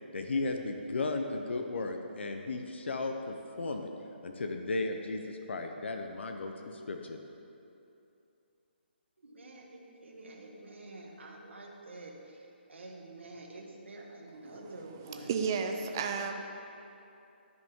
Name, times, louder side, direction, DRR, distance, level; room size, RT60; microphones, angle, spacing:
voice 1, 0.1-3.9 4.2-7.2, left 3 dB, 75° left, 4 dB, 0.7 m, -35 dB
voice 2, 9.2-15.4, right 2 dB, 85° right, 0 dB, 1.6 m, -48 dB
voice 3, 15.2-16.3, right 5 dB, 20° right, 5 dB, 0.4 m, -32 dB
12.5 x 5.2 x 3.6 m, 2.8 s
hypercardioid pair, 175°, 6 cm